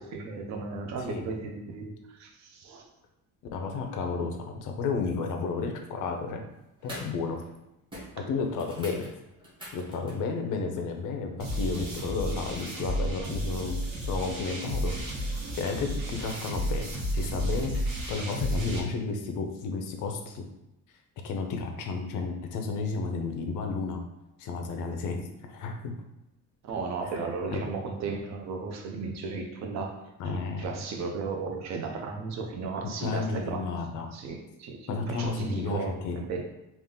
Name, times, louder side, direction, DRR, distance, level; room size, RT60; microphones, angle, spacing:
voice 1, 0.0-2.9 8.2-8.3 26.6-30.0 30.2-33.6 34.1-36.4, right 4 dB, 50° right, 3 dB, 0.6 m, -35 dB
voice 2, 3.5-6.5 6.8-7.4 8.3-9.1 9.7-15.0 15.6-20.4 21.2-24.0 24.4-26.0 27.5-27.6 30.2-30.7 33.0-34.1 34.9-36.2, left 4 dB, 55° left, 4 dB, 0.6 m, -32 dB
sound 1, 6.0-6.3 6.8-7.2 7.5-7.6 7.9-10.3 12.3-12.4, equal, 15° right, 0.9 m, -44 dB
sound 2, 11.4-18.8, right 1 dB, 65° right, 1.3 m, -32 dB
3.6 x 2.4 x 3.7 m, 0.91 s
cardioid pair, 180°, 37 cm